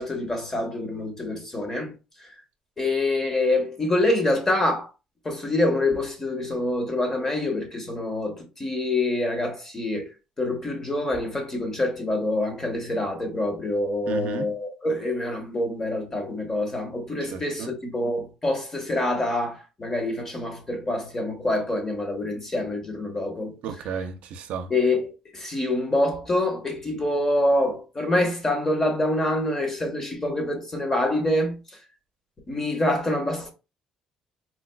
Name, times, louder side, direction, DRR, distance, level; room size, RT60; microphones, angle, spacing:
voice 1, 0.0-1.9 2.8-4.9 5.2-10.1 10.4-23.6 24.7-31.6 32.5-33.5, left 1 dB, 20° left, 0.9 m, -26 dB
voice 2, 14.1-14.5 17.2-17.7 23.6-24.7, right 7 dB, 75° right, 0.5 m, -33 dB
4.1 x 2.4 x 2.2 m
cardioid pair, 140°, 2 cm